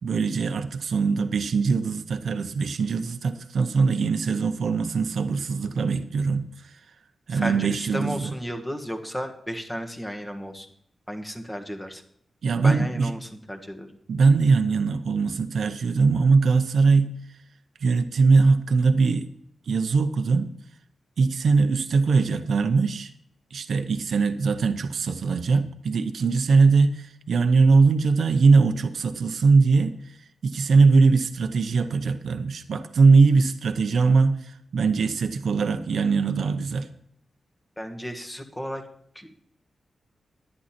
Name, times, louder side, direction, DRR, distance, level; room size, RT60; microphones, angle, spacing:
voice 1, 0.0-6.8 7.3-8.3 12.4-13.1 14.1-17.1 17.8-19.3 19.7-20.5 21.2-23.1 23.5-30.2 30.4-36.9, right 4 dB, 70° right, 8 dB, 0.8 m, -21 dB
voice 2, 7.3-10.7 11.1-12.0 12.6-14.0 37.8-38.8 39.1-39.4, equal, 10° left, 4 dB, 1.6 m, -33 dB
11.0 x 9.7 x 4.4 m, 0.68 s
cardioid pair, 85°, 0 cm